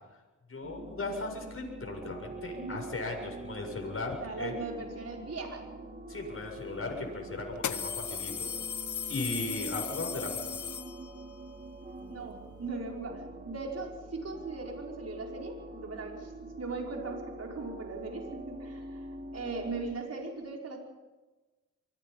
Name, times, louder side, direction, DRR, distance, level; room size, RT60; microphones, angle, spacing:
voice 1, 0.5-4.5 6.1-8.5 9.1-10.6, left 2 dB, 45° left, 1 dB, 7.4 m, -37 dB
sound 1, 0.6-20.0, right 2 dB, 30° right, 5.1 m, -45 dB
voice 2, 2.5-2.8 4.2-5.7 9.2-9.4 12.1-16.3 16.6-19.0 19.3-20.8, right 3 dB, 55° right, 0 dB, 5.5 m, -39 dB
sound 2, 6.4-6.5 7.5-11.3, left 8 dB, 70° left, 1.4 m, -36 dB
25.0 x 21.5 x 5.6 m, 1.1 s
cardioid pair, 75°, 30 cm